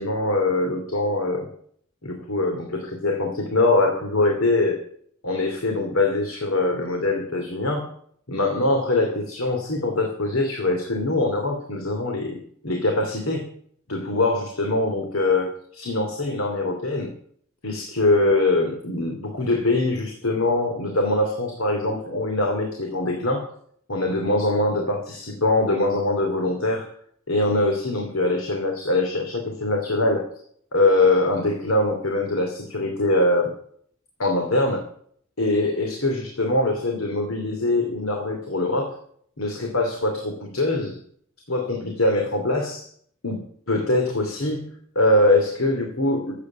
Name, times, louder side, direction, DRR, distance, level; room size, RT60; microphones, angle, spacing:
voice 1, 0.0-1.5 2.0-4.8 5.2-7.9 8.3-13.4 13.9-17.1 17.6-23.5 23.9-26.9 27.3-30.2 30.7-33.5 34.2-34.8 35.4-39.0 39.4-41.0 41.5-42.9 43.2-46.3, left 2 dB, 80° left, 3 dB, 2.6 m, -23 dB
13.5 x 8.4 x 8.9 m, 0.62 s
head